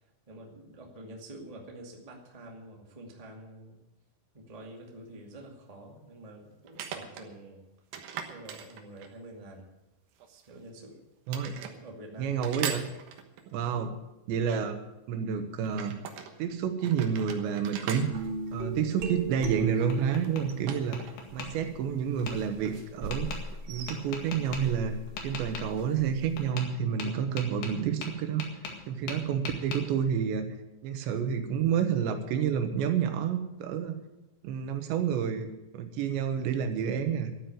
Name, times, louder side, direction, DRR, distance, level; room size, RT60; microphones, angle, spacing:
voice 1, 0.3-3.8 4.3-7.6 8.3-9.7 10.5-11.0 11.6-12.4, right 1 dB, 20° right, 0 dB, 0.9 m, -47 dB
sound 1, 4.5-4.6 6.7-7.3 7.9-9.3 10.2-10.9 11.3-11.8 12.4-13.5 15.6-16.3 16.8-19.2 20.2-21.5 21.8-21.9 23.5-23.9, right 8 dB, 65° right, 2.6 m, -40 dB
voice 2, 11.3-11.6 12.2-12.9 13.5-13.9 14.3-14.8 15.1-16.0 16.4-18.1 18.5-21.0 21.3-23.3 23.7-25.0 25.2-28.5 28.9-30.5 30.8-34.0 34.4-37.3, right 7 dB, 90° right, 7 dB, 3.5 m, -29 dB
sound 2, 18.1-20.5 21.2-26.5, right 4 dB, 45° right, 1.8 m, -38 dB
Tap, 19.4-20.4 20.9-21.5 22.3-22.4 23.1-23.4 23.9-24.6 25.2-25.7 26.4-26.7 27.0-28.8 29.1-29.8, left 5 dB, 70° left, 3.8 m, -39 dB
12.5 x 9.1 x 9.3 m, 0.98 s
omnidirectional pair, 5.0 m